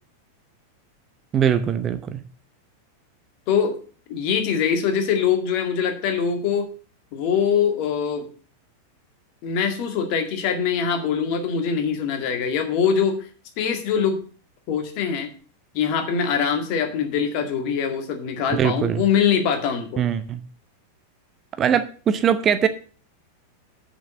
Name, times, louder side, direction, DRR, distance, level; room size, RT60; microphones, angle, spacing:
voice 1, 1.3-2.2 18.5-19.0 20.0-20.4 21.6-22.7, right 8 dB, 25° right, 11 dB, 0.8 m, -21 dB
voice 2, 4.1-6.7 7.1-8.3 9.4-13.3 13.6-14.2 14.7-15.3 15.7-20.0, left 7 dB, 45° left, 5 dB, 2.0 m, -23 dB
6.9 x 6.7 x 7.3 m, 0.40 s
figure-of-eight pair, 90°, 0 cm